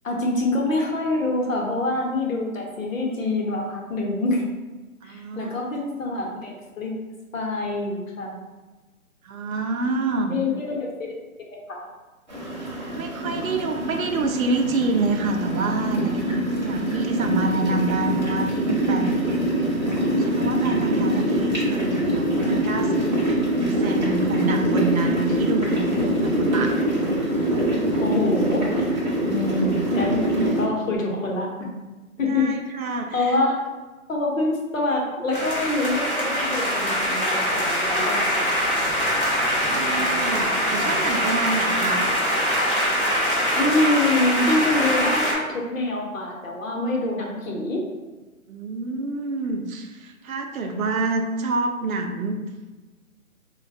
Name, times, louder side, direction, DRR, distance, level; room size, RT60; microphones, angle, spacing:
voice 1, 0.0-4.4 5.0-7.0 7.3-8.4 10.3-11.1 11.5-11.9 28.0-28.8 29.3-31.7 32.2-32.5 33.1-33.6 34.1-38.7 43.5-47.8 50.6-50.8, left 2 dB, 65° left, -1 dB, 0.8 m, -25 dB
voice 2, 5.0-5.6 9.2-10.3 12.6-19.2 20.1-23.0 23.7-25.9 26.2-26.7 32.3-33.4 39.7-42.1 48.5-52.4, right 3 dB, 75° right, 4 dB, 0.5 m, -27 dB
sound 1, 12.3-30.7, right 1 dB, 30° right, 0.6 m, -24 dB
sound 2, 35.3-45.4, equal, 40° left, 0.5 m, -23 dB
3.1 x 2.2 x 2.6 m, 1.2 s
hypercardioid pair, 175°, 43 cm